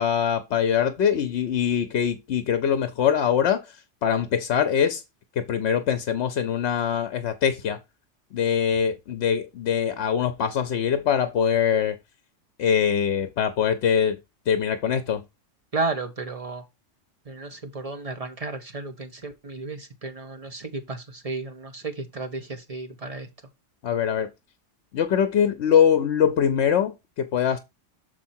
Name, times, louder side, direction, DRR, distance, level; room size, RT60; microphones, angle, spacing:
voice 1, 0.0-3.6 4.0-5.0 5.4-7.8 8.3-12.0 12.6-14.2 14.5-15.2 23.8-24.3 24.9-27.6, left 8 dB, 65° left, 0.9 m, -23 dB
voice 2, 15.7-16.6 17.3-23.3, right 3 dB, 30° right, 1.2 m, -33 dB
6.6 x 4.6 x 4.3 m
omnidirectional pair, 1.3 m